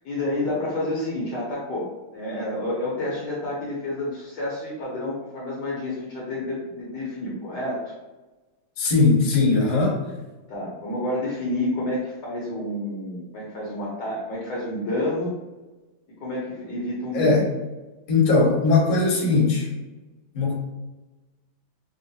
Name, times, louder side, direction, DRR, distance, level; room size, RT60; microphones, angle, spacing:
voice 1, 0.0-1.9 2.1-7.9 10.5-15.3 16.2-17.4, left 1 dB, 60° left, -5 dB, 1.2 m, -29 dB
voice 2, 8.8-10.0 17.1-17.5 18.1-19.7 20.3-20.5, left 3 dB, 35° left, -5 dB, 0.9 m, -19 dB
5.8 x 2.0 x 2.7 m, 1.2 s
omnidirectional pair, 2.4 m